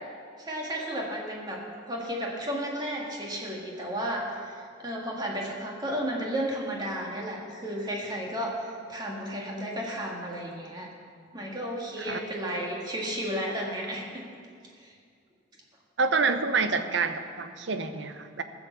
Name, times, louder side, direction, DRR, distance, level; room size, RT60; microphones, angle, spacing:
voice 1, 0.4-1.6 1.9-10.9 11.3-14.3 14.8-14.9, equal, 20° right, -2 dB, 1.8 m, -33 dB
voice 2, 16.0-18.4, right 4 dB, 70° right, 9 dB, 0.8 m, -27 dB
15.5 x 6.3 x 7.1 m, 2.2 s
head